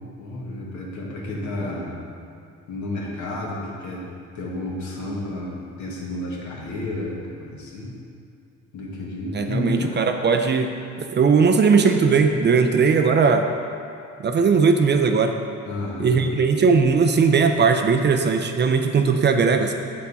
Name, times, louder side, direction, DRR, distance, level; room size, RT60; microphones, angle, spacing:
voice 1, 0.2-1.9 2.7-4.0 4.3-7.9 8.7-10.3 15.6-16.3, left 2 dB, 70° left, -3 dB, 1.5 m, -31 dB
voice 2, 9.3-10.7 11.0-13.5 14.2-15.3 16.0-19.7, right 5 dB, 35° right, 5 dB, 0.4 m, -18 dB
7.2 x 4.4 x 4.1 m, 2.5 s
cardioid pair, 90°, 30 cm